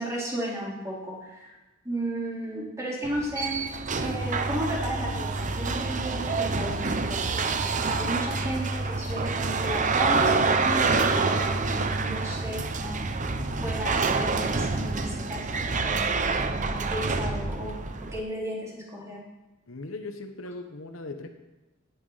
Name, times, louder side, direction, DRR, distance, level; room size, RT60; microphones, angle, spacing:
voice 1, 0.0-1.5 1.8-3.6 4.0-13.0 13.6-15.5 15.8-16.1 16.5-17.7 18.1-19.2, equal, 15° right, -5 dB, 4.0 m, -34 dB
sound 1, 3.0-18.2, right 4 dB, 40° right, 0.7 m, -27 dB
voice 2, 13.4-13.9 19.7-21.3, left 2 dB, 75° left, 5 dB, 1.2 m, -39 dB
17.0 x 9.4 x 4.2 m, 1.0 s
head